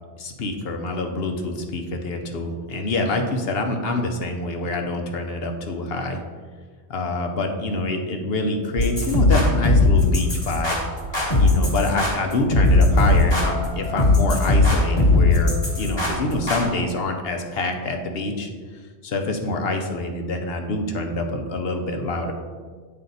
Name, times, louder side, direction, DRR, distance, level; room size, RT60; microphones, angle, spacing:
voice 1, 0.2-6.2 6.9-10.8 11.4-18.5 19.0-22.3, left 2 dB, 60° left, 4 dB, 0.9 m, -26 dB
sound 1, 8.8-16.6, left 2 dB, 25° left, 1.3 m, -19 dB
9.1 x 3.3 x 3.9 m, 1.5 s
omnidirectional pair, 1.2 m